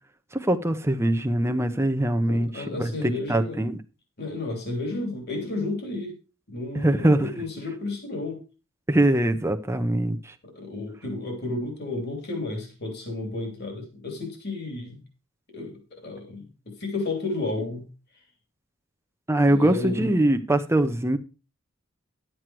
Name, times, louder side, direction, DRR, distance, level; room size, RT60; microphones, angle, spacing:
voice 1, 0.3-3.8 6.7-7.3 8.9-10.3 19.3-21.2, right 1 dB, 15° right, 7 dB, 0.8 m, -23 dB
voice 2, 2.3-3.6 4.2-6.1 6.5-8.4 10.4-15.0 15.5-17.9 19.5-20.1, left 2 dB, 50° left, 3 dB, 3.1 m, -32 dB
11.0 x 7.8 x 4.7 m, 0.32 s
head